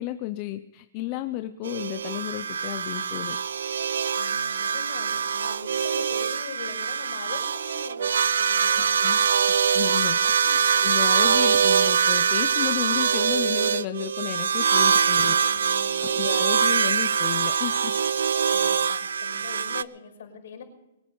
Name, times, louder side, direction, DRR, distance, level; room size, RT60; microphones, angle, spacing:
voice 1, 0.0-3.4 9.0-9.2 9.7-15.5 16.0-17.9, left 16 dB, 25° left, 9 dB, 0.6 m, -33 dB
sound 1, 1.6-19.8, right 7 dB, 90° right, 0.5 m, -23 dB
voice 2, 4.2-9.0 10.2-10.3 10.6-10.9 15.2-16.5 18.5-20.6, left 5 dB, 60° left, 3 dB, 5.6 m, -42 dB
23.0 x 8.9 x 5.4 m, 0.92 s
hypercardioid pair, 170°, 0 cm